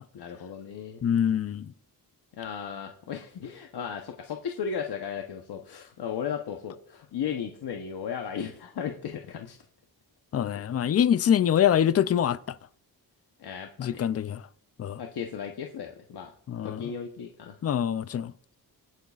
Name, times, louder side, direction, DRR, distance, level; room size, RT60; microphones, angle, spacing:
voice 1, 0.1-1.0 2.3-9.6 13.4-14.0 15.0-16.3 16.6-17.6, left 7 dB, 80° left, 1.0 m, -35 dB
voice 2, 1.0-1.7 10.3-12.4 13.8-14.4 14.8-15.0 16.5-16.8 17.6-18.3, left 9 dB, 40° left, 0.4 m, -24 dB
23.5 x 9.2 x 2.4 m
wide cardioid pair, 105°, 38 cm